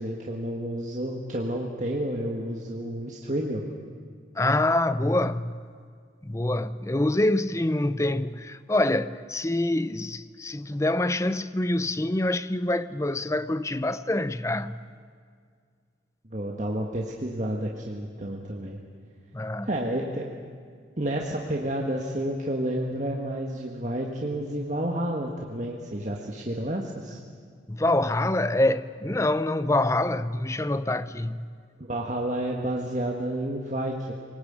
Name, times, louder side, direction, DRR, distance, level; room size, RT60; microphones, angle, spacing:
voice 1, 0.0-3.6 16.3-18.8 19.6-20.3 21.0-27.2 31.8-34.1, right 1 dB, 40° right, 1.7 m, -30 dB
voice 2, 4.4-5.7 6.2-14.8 19.3-19.7 27.7-31.5, left 1 dB, 15° left, 0.6 m, -26 dB
24.5 x 19.0 x 8.8 m
head